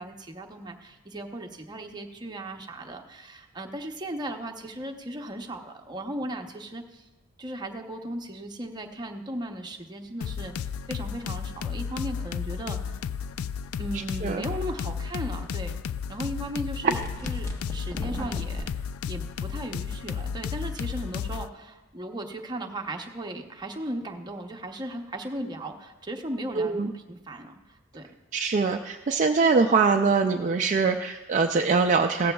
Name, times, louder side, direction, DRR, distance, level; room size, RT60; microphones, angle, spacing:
voice 1, 0.0-7.0 7.4-13.0 13.8-15.7 16.1-18.7 19.1-28.1, right 1 dB, 20° right, 3 dB, 0.8 m, -37 dB
sound 1, 10.2-21.5, left 7 dB, 85° left, 0.3 m, -33 dB
sound 2, 17.0-18.7, equal, 15° left, 1.2 m, -37 dB
voice 2, 26.6-26.9 28.3-32.3, right 4 dB, 35° right, 4 dB, 0.4 m, -23 dB
16.5 x 13.5 x 2.3 m, 1.1 s
head